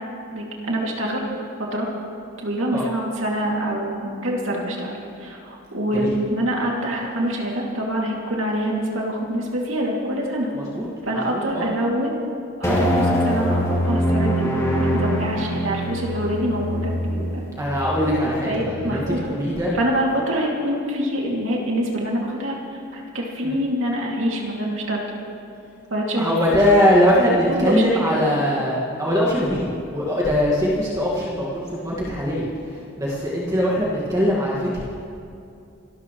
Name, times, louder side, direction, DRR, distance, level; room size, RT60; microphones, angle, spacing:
voice 1, 0.3-1.2 1.6-1.9 2.4-10.5 11.0-12.1 12.6-14.5 14.8-17.4 18.4-19.3 19.7-22.6 22.9-25.0 25.9-26.3 27.5-28.1, equal, 70° right, -2 dB, 2.5 m, -25 dB
voice 2, 10.6-10.9 11.3-11.6 17.6-19.7 23.4-23.5 26.2-34.7, equal, 15° right, -5 dB, 1.8 m, -21 dB
sound 1, 12.6-19.1, equal, 15° left, 2.9 m, -24 dB
26.0 x 13.0 x 3.1 m, 2.5 s
head